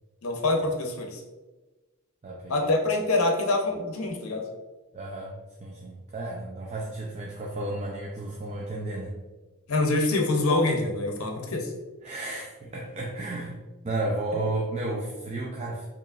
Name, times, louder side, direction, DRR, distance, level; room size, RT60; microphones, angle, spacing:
voice 1, 0.2-1.2 2.5-4.5 9.7-11.7, left 2 dB, 75° left, 2 dB, 0.7 m, -25 dB
voice 2, 2.2-2.7 4.9-9.1 12.0-13.6 13.8-15.9, right 2 dB, 30° right, -2 dB, 0.4 m, -33 dB
4.7 x 2.9 x 2.4 m, 1.2 s
head